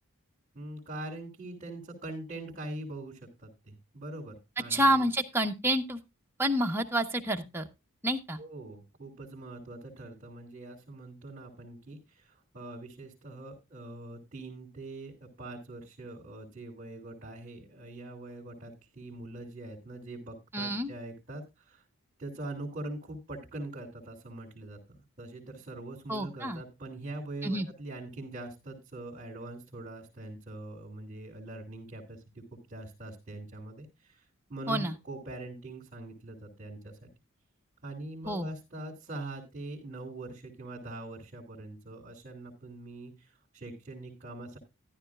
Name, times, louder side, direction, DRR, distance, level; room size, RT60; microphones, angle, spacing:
voice 1, 0.5-5.1 8.4-21.8 22.2-37.1 37.8-44.6, right 2 dB, 35° right, -3 dB, 3.0 m, -43 dB
voice 2, 4.7-6.0 6.4-7.7 8.0-8.4 20.5-20.9 26.1-26.6 27.4-27.7 34.7-34.9 38.3-38.5, right 1 dB, 10° right, 3 dB, 1.0 m, -28 dB
13.5 x 12.0 x 2.4 m, 0.25 s
head